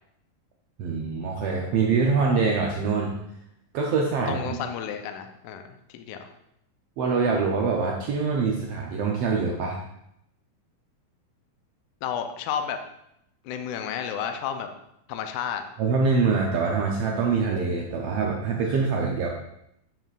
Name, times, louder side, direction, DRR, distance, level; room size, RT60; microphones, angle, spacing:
voice 1, 0.8-3.2 3.7-4.6 7.0-9.8 15.8-19.3, right 4 dB, 85° right, -1 dB, 1.3 m, -24 dB
voice 2, 4.3-5.6 5.9-6.3 12.0-12.8 13.4-14.7 15.1-15.6, left 8 dB, 80° left, 6 dB, 2.1 m, -31 dB
9.0 x 7.6 x 2.4 m, 0.79 s
omnidirectional pair, 3.7 m